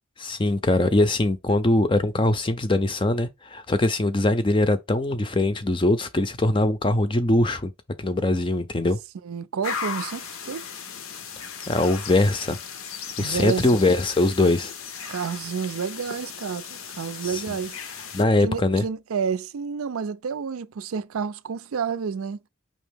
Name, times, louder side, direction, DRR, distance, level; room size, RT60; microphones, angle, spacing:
voice 1, 0.2-7.7 8.0-9.0 11.7-12.6 13.2-14.7 17.2-17.5 18.1-18.8, left 2 dB, 25° left, 0.5 m, -22 dB
voice 2, 9.2-10.6 13.2-13.7 14.4-14.5 15.1-17.8 18.4-22.4, right 6 dB, 90° right, 0.5 m, -30 dB
sound 1, 9.6-18.2, left 6 dB, 80° left, 0.8 m, -36 dB
5.3 x 2.9 x 3.4 m
head